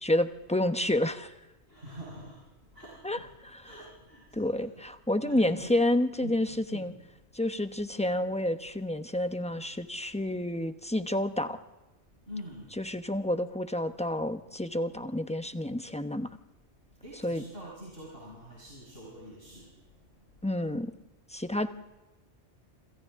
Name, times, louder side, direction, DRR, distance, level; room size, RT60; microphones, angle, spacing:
voice 1, 0.0-1.3 3.0-3.6 4.3-6.9 7.3-11.6 12.8-16.3 17.2-17.4 20.4-20.9 21.3-21.7, left 1 dB, 5° left, 8 dB, 0.8 m, -29 dB
voice 2, 1.7-2.4 2.7-3.3 3.6-4.8 5.2-5.8 6.2-7.0 12.3-12.7 17.0-19.7, equal, 55° right, -4 dB, 5.6 m, -45 dB
28.0 x 26.5 x 3.7 m, 1.1 s
omnidirectional pair, 1.2 m